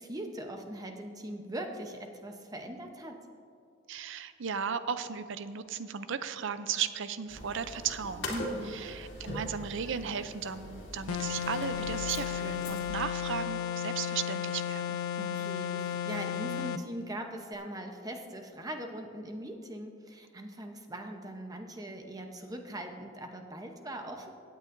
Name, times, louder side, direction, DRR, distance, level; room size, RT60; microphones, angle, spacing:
voice 1, 0.0-3.2 8.3-8.8 15.2-24.3, right 1 dB, 15° right, 4 dB, 0.8 m, -41 dB
voice 2, 3.9-8.3 8.7-15.0, right 7 dB, 60° right, 12 dB, 0.5 m, -35 dB
sound 1, 7.3-12.9, left 1 dB, 55° left, 2.3 m, -42 dB
sound 2, 11.1-16.9, left 9 dB, 80° left, 0.4 m, -34 dB
16.5 x 9.3 x 2.6 m, 2.5 s
head